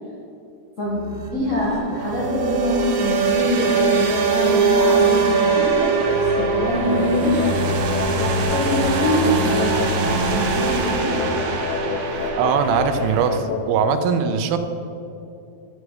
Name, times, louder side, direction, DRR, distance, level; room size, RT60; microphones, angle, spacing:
sound 1, 1.0-13.4, right 4 dB, 70° right, 1.8 m, -22 dB
voice 1, 1.3-7.5 8.3-11.2, left 1 dB, 60° left, -7 dB, 0.8 m, -24 dB
sound 2, 5.8-14.0, left 4 dB, 75° left, 2.0 m, -28 dB
voice 2, 12.4-14.6, right 7 dB, 90° right, 9 dB, 2.4 m, -21 dB
8.3 x 6.5 x 4.8 m, 2.8 s
omnidirectional pair, 4.1 m